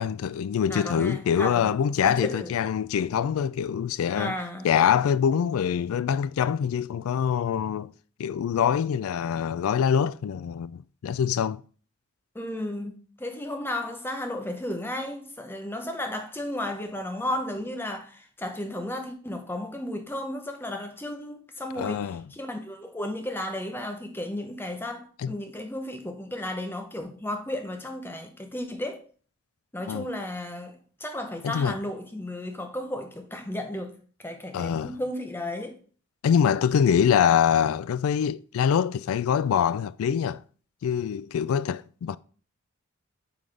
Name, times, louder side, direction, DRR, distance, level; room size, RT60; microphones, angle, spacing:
voice 1, 0.0-4.4 4.6-7.9 8.2-11.6 21.8-22.3 25.2-25.4 29.9-30.1 31.4-31.8 34.5-35.0 36.2-40.4 40.8-42.2, left 8 dB, 80° left, 0.3 m, -24 dB
voice 2, 0.7-2.5 4.2-4.7 12.3-29.1 29.7-34.0 34.2-35.8, left 1 dB, 10° left, 0.7 m, -34 dB
8.4 x 3.9 x 3.3 m
head